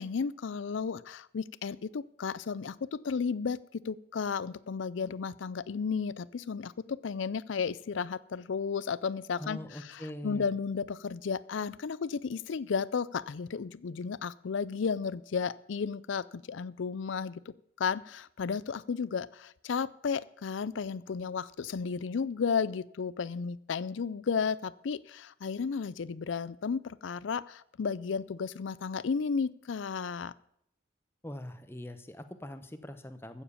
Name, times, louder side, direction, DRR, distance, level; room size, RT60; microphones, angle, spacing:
voice 1, 0.0-9.6 9.9-30.3, left 5 dB, 75° left, 19 dB, 0.4 m, -33 dB
voice 2, 9.4-10.5 31.2-33.4, left 1 dB, 10° left, 9 dB, 0.8 m, -42 dB
15.0 x 7.3 x 7.1 m, 0.73 s
head